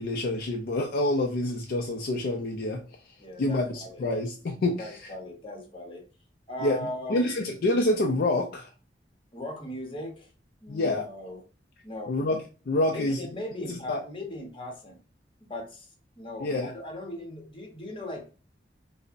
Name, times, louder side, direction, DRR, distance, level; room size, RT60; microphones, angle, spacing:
voice 1, 0.0-2.8 3.4-4.9 6.6-6.8 7.1-8.7 10.7-11.1 12.1-12.4 12.7-13.2 13.6-14.0 16.4-16.7, left 2 dB, 55° left, 0.4 m, -27 dB
voice 2, 3.2-4.0 4.8-6.0 6.5-7.3 9.3-10.3 10.6-11.4 11.8-12.2 12.9-15.0 15.4-15.9 16.2-18.3, left 1 dB, 30° left, 0.9 m, -38 dB
5.1 x 2.1 x 2.5 m
head